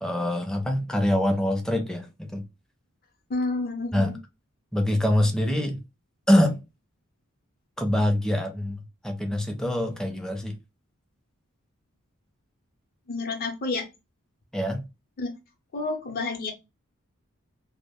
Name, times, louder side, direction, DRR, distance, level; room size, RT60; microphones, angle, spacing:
voice 1, 0.0-2.4 3.9-4.1 4.7-5.8 6.3-6.6 7.8-8.8 9.0-10.6 14.5-14.8, left 1 dB, 5° left, 0.4 m, -24 dB
voice 2, 3.3-4.2 13.1-13.9 15.2-15.3 15.7-16.5, left 3 dB, 45° left, 0.6 m, -29 dB
2.2 x 2.0 x 3.4 m
head